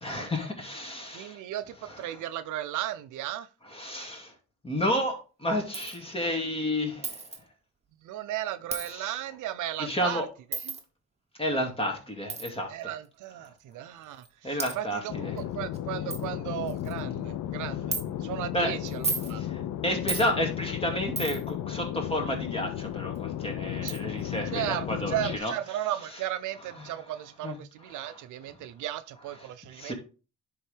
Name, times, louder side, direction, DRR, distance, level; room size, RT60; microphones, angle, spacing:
voice 1, 0.0-1.4 3.7-4.3 4.6-7.2 8.9-9.1 9.8-10.3 11.4-12.7 14.4-15.3 18.5-18.7 19.4-25.5 26.8-26.9 27.4-27.6 28.0-28.2 29.8-29.9, equal, 20° left, 2.2 m, -31 dB
voice 2, 1.1-3.5 8.0-10.3 10.6-10.8 12.7-19.4 23.8-23.9 24.5-29.9, right 12 dB, 80° right, 0.6 m, -35 dB
Coin (dropping), 5.7-6.0 7.0-7.4 8.7-8.9 10.5-10.8 12.3-12.5 13.4-13.5 14.2-14.3 14.6-14.7 15.4-15.5 15.7-15.8 16.1-16.2 16.7-17.0 17.9-18.0 18.9-19.3 20.1-20.3 21.2-21.5 23.2-23.3 23.9-24.0, right 4 dB, 20° right, 1.1 m, -33 dB
sound 1, 15.1-25.4, left 11 dB, 75° left, 0.6 m, -34 dB
10.5 x 3.7 x 3.3 m
cardioid pair, 90°, 30 cm